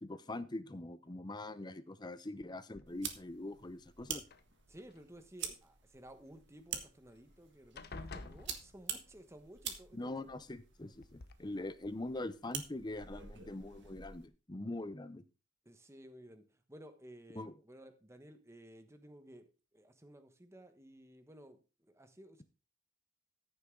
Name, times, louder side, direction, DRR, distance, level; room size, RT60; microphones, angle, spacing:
voice 1, 0.0-4.2 9.9-15.2 17.4-17.5, left 2 dB, 20° left, 13 dB, 0.7 m, -43 dB
sound 1, 2.7-3.3 4.2-5.0 6.8-6.9 7.2-7.4 7.7-9.2 10.3-10.4 11.0-11.3, left 3 dB, 50° left, 0.9 m, -50 dB
sound 2, 2.9-14.3, right 8 dB, 60° right, 1.6 m, -47 dB
voice 2, 4.7-10.4 15.6-19.5 19.7-22.4, right 1 dB, 15° right, 8 dB, 1.2 m, -56 dB
14.5 x 6.8 x 3.8 m, 0.32 s
head